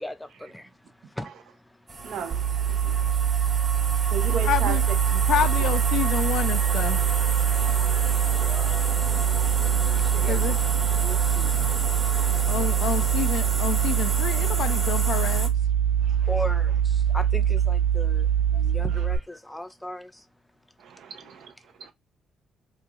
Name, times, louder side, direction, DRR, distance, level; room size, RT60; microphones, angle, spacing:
voice 1, 0.0-2.1 2.7-4.4 7.6-12.5 16.0-20.3, left 1 dB, 5° left, 0.5 m, -40 dB
sound 1, 1.9-15.5, right 3 dB, 30° right, 1.1 m, -32 dB
voice 2, 2.0-3.1 4.1-4.8 5.1-5.2 5.6-5.7 7.6-8.2 12.3-12.4 20.8-21.5 21.8-21.9, right 7 dB, 70° right, 0.6 m, -36 dB
sound 2, 2.3-19.2, right 9 dB, 50° right, 1.3 m, -23 dB
voice 3, 4.4-4.8 5.3-7.0 10.2-10.6 12.5-15.5, left 10 dB, 75° left, 0.4 m, -28 dB
3.0 x 2.3 x 3.7 m
cardioid pair, 90°, 0 cm